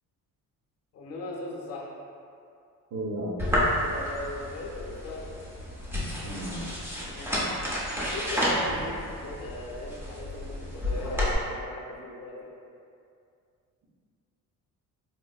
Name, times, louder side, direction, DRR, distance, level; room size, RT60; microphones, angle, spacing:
voice 1, 0.9-1.9 3.7-5.4 6.1-6.5 7.0-7.5 7.8-12.6, left 2 dB, 45° left, -2 dB, 0.6 m, -39 dB
voice 2, 2.9-3.4 6.2-6.6, right 1 dB, 55° right, -5 dB, 0.7 m, -33 dB
sound 1, 3.4-11.3, equal, 5° right, 0.5 m, -31 dB
4.2 x 2.5 x 2.3 m, 2.4 s
cardioid pair, 150°, 34 cm